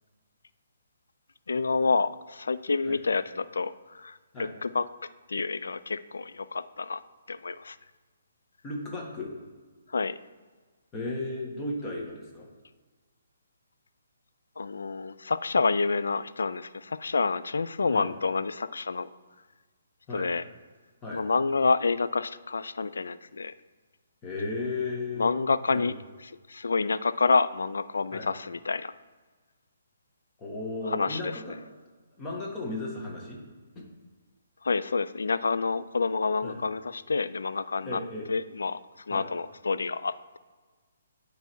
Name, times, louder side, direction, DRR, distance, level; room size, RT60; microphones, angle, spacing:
voice 1, 1.5-4.8 5.3-7.0 7.3-7.8 9.9-10.2 14.6-19.1 20.1-20.4 21.1-23.5 25.2-25.9 26.5-28.9 30.9-31.3 34.6-38.0 38.3-38.8 39.1-40.4, left 4 dB, 90° left, 14 dB, 0.3 m, -28 dB
voice 2, 8.6-9.3 10.9-12.5 17.9-18.1 20.1-20.3 21.0-21.2 24.2-25.4 25.7-25.9 28.1-28.3 30.4-31.6 32.2-33.4 33.7-33.9 36.4-36.6 37.8-38.3 39.1-39.2, left 2 dB, 20° left, -2 dB, 1.5 m, -35 dB
9.1 x 3.3 x 4.5 m, 1.4 s
hypercardioid pair, 155°, 0 cm